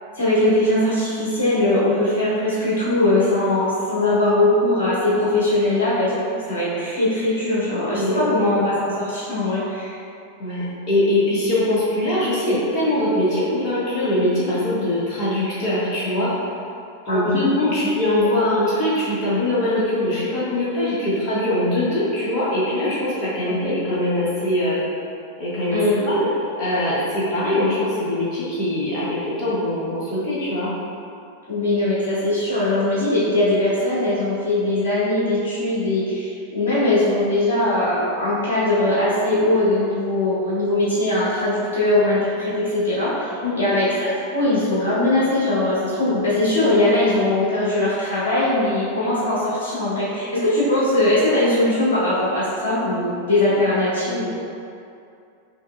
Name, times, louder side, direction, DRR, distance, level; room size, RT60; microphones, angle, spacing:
voice 1, 0.1-10.0 17.1-17.5 23.5-23.7 25.7-26.0 31.5-54.3, left 1 dB, 65° left, -9 dB, 1.4 m, -20 dB
voice 2, 7.9-8.3 10.4-16.3 17.0-24.8 25.4-26.2 26.6-30.7 43.4-43.7, left 1 dB, 40° left, -9 dB, 1.4 m, -22 dB
5.2 x 3.0 x 2.3 m, 2.5 s
figure-of-eight pair, 90°, 0 cm